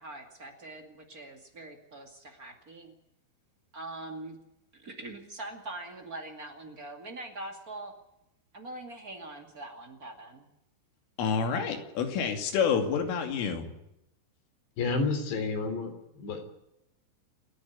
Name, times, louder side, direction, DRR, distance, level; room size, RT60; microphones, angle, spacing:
voice 1, 0.0-2.9 3.7-4.4 4.7-7.9 8.5-10.5, right 2 dB, 35° right, 3 dB, 1.5 m, -43 dB
voice 2, 11.2-13.7, left 6 dB, 85° left, 4 dB, 5.2 m, -28 dB
voice 3, 14.8-16.5, left 3 dB, 65° left, 7 dB, 5.2 m, -31 dB
29.0 x 10.0 x 9.5 m, 0.84 s
omnidirectional pair, 5.6 m